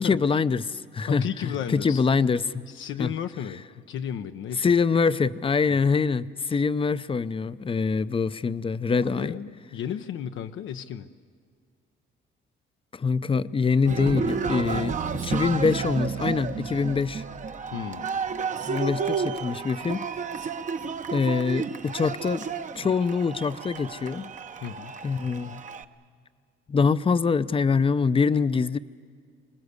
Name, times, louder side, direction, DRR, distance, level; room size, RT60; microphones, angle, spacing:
voice 1, 0.0-2.6 3.0-3.1 4.6-9.3 12.9-17.2 18.7-20.1 21.1-22.5 22.8-24.3 25.0-25.6 26.7-28.8, left 5 dB, 25° left, 14 dB, 0.6 m, -24 dB
voice 2, 1.1-2.0 2.7-4.7 5.7-5.8 9.0-11.1 17.7-18.1 24.6-24.9, left 9 dB, 75° left, 6 dB, 0.8 m, -34 dB
Cheering, 13.8-25.8, right 5 dB, 40° right, 0.9 m, -31 dB
25.5 x 20.0 x 8.2 m, 2.1 s
cardioid pair, 90°, 20 cm